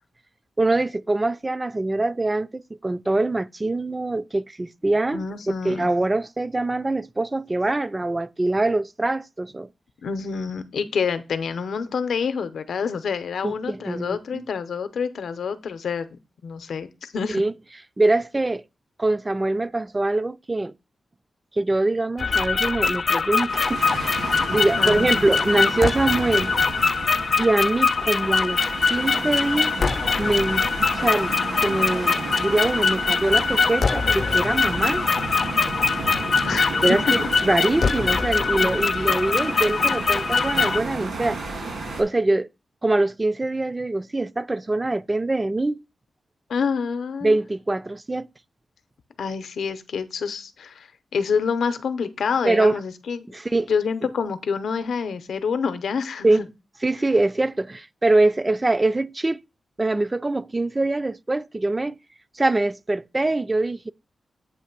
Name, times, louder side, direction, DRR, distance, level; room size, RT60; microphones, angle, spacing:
voice 1, 0.6-5.2 5.6-9.7 13.4-14.4 17.3-17.5 18.0-18.6 19.0-20.7 21.5-26.5 27.4-28.6 28.9-29.7 30.2-30.7 30.9-31.4 31.6-35.0 36.8-41.4 42.0-42.5 42.8-45.8 47.2-48.3 52.5-52.8 53.3-53.7 56.2-56.4 56.8-59.4 59.8-62.0 62.3-63.9, right 2 dB, 20° right, 0.3 m, -23 dB
voice 2, 5.1-5.9 10.0-16.1 16.4-17.4 24.8-25.2 36.4-37.0 39.0-39.1 46.5-47.4 49.2-53.3 53.7-56.3, left 6 dB, 85° left, 0.7 m, -27 dB
sound 1, 22.2-40.8, left 5 dB, 50° left, 0.4 m, -23 dB
sound 2, 23.5-42.0, right 3 dB, 75° right, 2.7 m, -32 dB
8.2 x 3.1 x 5.8 m
wide cardioid pair, 115°, 0 cm